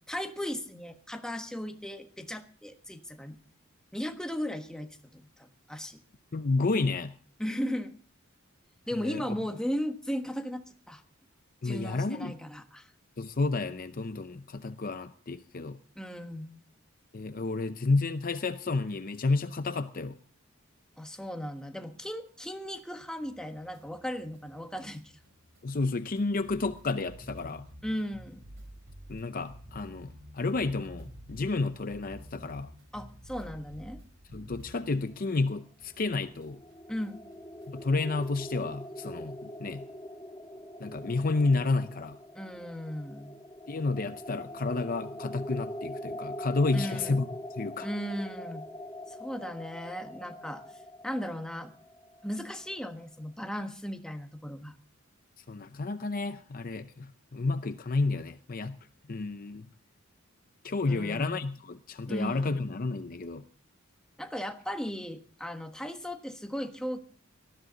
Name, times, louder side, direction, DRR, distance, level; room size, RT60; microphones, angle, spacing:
voice 1, 0.1-3.4 3.9-6.0 7.4-7.9 8.9-11.0 11.6-12.9 15.9-16.6 21.0-25.1 27.8-28.4 32.9-34.0 36.9-37.2 42.3-43.4 46.7-47.3 47.8-48.7 49.1-50.6 51.0-51.7 52.2-54.7 60.8-61.4 62.1-62.6 64.2-67.0, equal, 5° left, 5 dB, 1.3 m, -36 dB
voice 2, 6.3-7.1 9.0-9.4 11.6-12.4 13.2-15.8 17.1-20.2 25.6-27.7 29.1-32.7 34.3-36.6 37.7-39.9 40.8-42.2 43.7-47.3 47.6-47.9 55.5-58.8 59.1-59.7 60.6-63.4, left 3 dB, 45° left, 11 dB, 0.6 m, -31 dB
sound 1, 23.2-35.5 35.8-38.6, equal, 55° right, 3.1 m, -51 dB
sound 2, 36.0-52.8, equal, 20° left, 1.5 m, -43 dB
18.5 x 13.5 x 3.9 m, 0.42 s
head